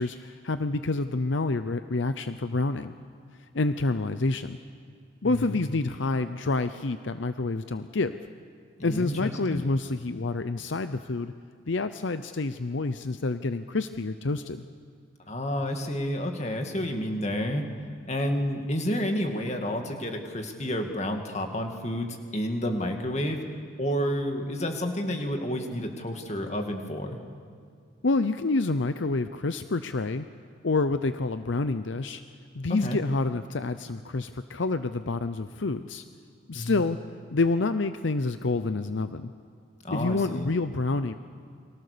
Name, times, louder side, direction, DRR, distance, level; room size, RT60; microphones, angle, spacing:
voice 1, 0.0-2.9 3.5-4.6 5.2-8.2 8.8-11.3 11.7-14.6 28.0-30.3 30.6-32.2 32.5-36.0 36.5-37.0 37.3-39.3 39.9-41.1, left 3 dB, 70° left, 11 dB, 0.7 m, -28 dB
voice 2, 5.2-5.6 8.8-9.7 15.3-17.6 18.1-23.4 23.8-27.2 32.8-33.0 36.5-36.8 39.8-40.5, equal, 35° left, 4 dB, 2.3 m, -30 dB
30.0 x 23.5 x 6.9 m, 2.2 s
head